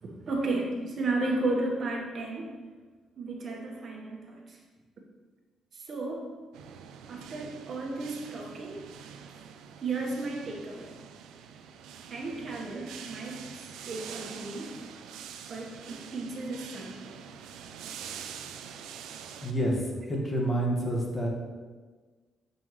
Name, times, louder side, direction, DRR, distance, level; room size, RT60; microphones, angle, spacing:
voice 1, 0.0-2.5 3.2-4.6 5.7-6.3 7.1-8.9 9.8-11.0 12.1-14.7 15.5-17.2, right 2 dB, 50° right, -1 dB, 1.3 m, -34 dB
sound 1, 6.5-19.5, right 8 dB, 90° right, 0.5 m, -45 dB
voice 2, 19.4-21.3, right 1 dB, 25° left, -2 dB, 1.7 m, -28 dB
8.4 x 5.4 x 3.2 m, 1.4 s
cardioid pair, 90°, 0 cm